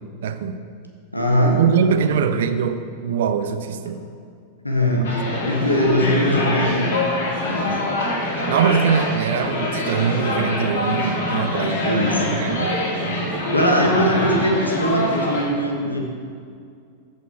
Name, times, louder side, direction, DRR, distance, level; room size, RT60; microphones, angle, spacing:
voice 1, 0.2-0.6 1.6-4.0 5.0-5.5 8.5-11.9 12.4-12.8 13.1-13.4, right 7 dB, 60° right, 10 dB, 0.5 m, -22 dB
voice 2, 1.1-1.6 2.1-2.3 4.6-5.1 5.4-6.9 7.5-7.7 11.8-12.4 13.5-16.0, equal, 85° left, 1 dB, 1.3 m, -20 dB
sound 1, 5.0-15.4, left 1 dB, 60° left, 1.7 m, -24 dB
14.0 x 5.2 x 4.3 m, 2.3 s
figure-of-eight pair, 90°, 0 cm